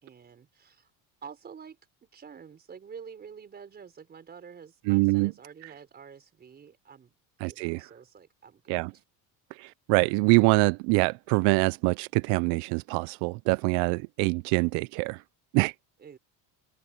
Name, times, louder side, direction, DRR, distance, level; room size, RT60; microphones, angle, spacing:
voice 1, 0.0-0.9 1.2-7.1 7.4-8.8 16.0-16.2, right 6 dB, 25° right, 4.6 m, -48 dB
voice 2, 4.9-5.3 7.4-7.9 8.7-8.9 9.5-15.2 15.5-15.7, right 26 dB, 80° right, 0.6 m, -24 dB
cardioid pair, 165°, 40 cm